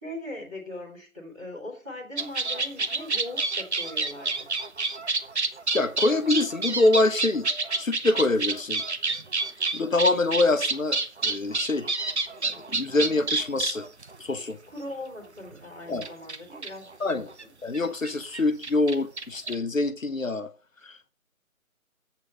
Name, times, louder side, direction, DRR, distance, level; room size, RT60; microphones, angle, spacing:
voice 1, 0.0-4.5 14.7-17.5, left 1 dB, 5° right, 1.3 m, -40 dB
sound 1, 2.2-14.4 15.5-15.6 16.0-17.4 17.7-17.8 18.0-19.6, right 3 dB, 50° right, 0.9 m, -29 dB
voice 2, 5.7-7.5 7.8-8.8 9.7-11.0 11.2-11.9 12.4-13.9 14.2-14.6 15.9-16.0 17.0-17.3 17.6-20.5 20.8-21.1, left 2 dB, 65° left, 1.1 m, -25 dB
8.0 x 4.8 x 6.1 m
figure-of-eight pair, 160°, 43 cm